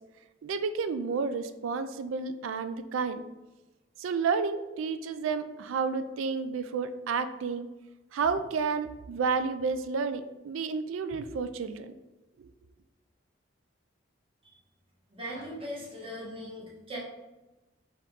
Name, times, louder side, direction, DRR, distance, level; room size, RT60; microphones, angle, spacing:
voice 1, 0.4-3.2 4.0-7.7 8.1-11.9 12.4-12.5, right 5 dB, 85° right, 11 dB, 0.4 m, -31 dB
voice 2, 15.1-17.0, equal, 30° right, -5 dB, 1.3 m, -39 dB
4.6 x 3.0 x 3.6 m, 1.1 s
head